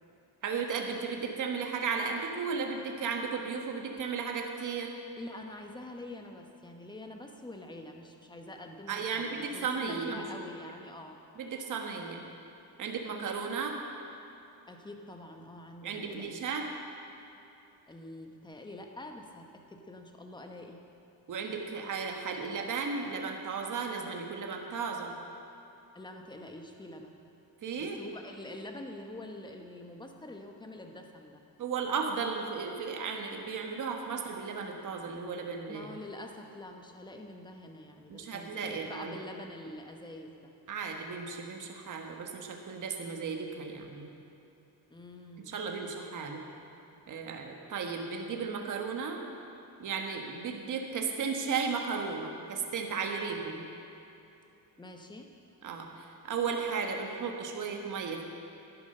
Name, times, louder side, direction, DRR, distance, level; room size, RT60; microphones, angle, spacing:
voice 1, 0.4-4.9 8.9-10.2 11.4-12.2 12.8-13.8 15.8-16.7 21.3-25.2 27.6-28.0 31.6-36.0 38.1-39.2 40.7-44.1 45.5-46.5 47.1-49.2 49.8-53.6 55.6-58.2, right 5 dB, 50° right, 2 dB, 1.4 m, -35 dB
voice 2, 5.2-11.2 14.7-16.5 17.9-20.8 25.9-27.2 27.8-31.4 35.7-40.5 44.9-45.6 54.8-55.3, left 1 dB, 10° left, 3 dB, 1.0 m, -46 dB
11.0 x 10.5 x 5.5 m, 2.9 s
cardioid pair, 130°, 40 cm